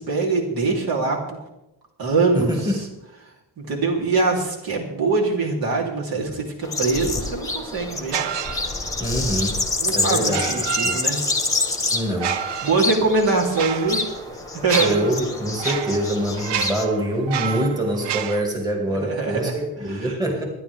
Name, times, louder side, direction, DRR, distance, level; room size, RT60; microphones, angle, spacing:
voice 1, 0.0-1.4 2.0-2.7 3.6-8.2 9.8-11.2 12.6-14.0 14.6-15.0 18.9-19.5 19.9-20.1, right 3 dB, 60° right, -1 dB, 3.3 m, -23 dB
voice 2, 2.3-2.8 9.0-9.6 9.9-10.5 10.8-11.0 11.9-12.4 14.8-20.4, right 1 dB, 10° right, 1 dB, 2.1 m, -25 dB
sound 1, 6.6-16.9, left 3 dB, 10° left, 1.3 m, -27 dB
sound 2, 8.1-9.1 10.2-11.5 12.1-18.4, right 8 dB, 75° right, 0.9 m, -29 dB
25.0 x 10.5 x 3.5 m, 0.92 s
cardioid pair, 155°, 42 cm